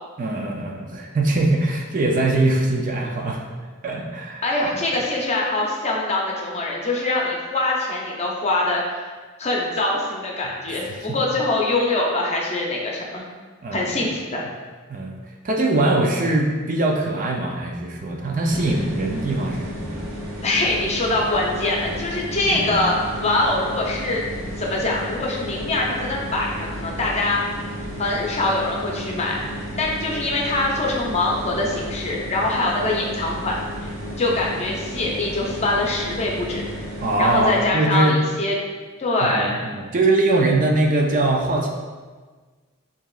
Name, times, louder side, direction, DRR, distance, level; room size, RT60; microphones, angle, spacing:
voice 1, 0.2-3.4 3.8-4.4 10.7-11.2 13.6-14.1 14.9-15.2 15.4-20.1 22.5-22.8 37.0-38.2 39.2-41.7, right 2 dB, 40° right, 0 dB, 0.5 m, -22 dB
voice 2, 4.4-8.8 9.4-13.2 13.7-14.4 20.4-24.2 24.6-27.4 28.0-29.4 29.8-33.6 33.8-33.9 34.2-36.6 37.2-38.5 39.0-39.6, left 2 dB, 30° left, -2 dB, 0.7 m, -23 dB
sound 1, 18.5-37.8, equal, 85° right, 0.8 m, -33 dB
6.8 x 2.9 x 2.4 m, 1.4 s
head